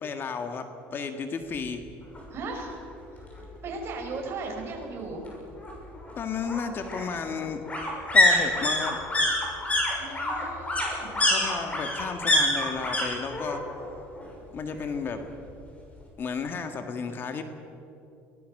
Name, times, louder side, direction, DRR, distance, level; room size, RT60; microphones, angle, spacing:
voice 1, 0.0-0.7 0.9-1.8 6.2-7.6 8.1-9.0 11.3-13.6 14.5-15.2 16.2-17.4, left 5 dB, 40° left, 7 dB, 1.9 m, -33 dB
sound 1, 2.1-2.2 2.6-2.7 3.0-4.0 5.3-13.0 13.3-13.9 14.1-15.2 15.5-15.6, left 1 dB, 25° left, 6.5 m, -26 dB
voice 2, 2.3-2.8 3.6-5.2 10.0-11.1, right 3 dB, 45° right, 1 dB, 5.8 m, -36 dB
23.5 x 19.0 x 6.7 m, 2.7 s
supercardioid pair, 105°, 6 cm